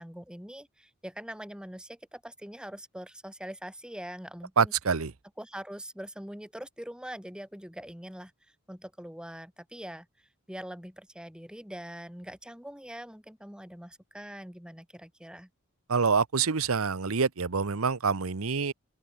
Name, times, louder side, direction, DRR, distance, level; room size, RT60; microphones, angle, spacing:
voice 1, 0.0-4.7 5.4-15.5, equal, 5° right, 2.2 m, -43 dB
voice 2, 4.6-5.1 15.9-18.7, right 5 dB, 85° right, 0.9 m, -26 dB
head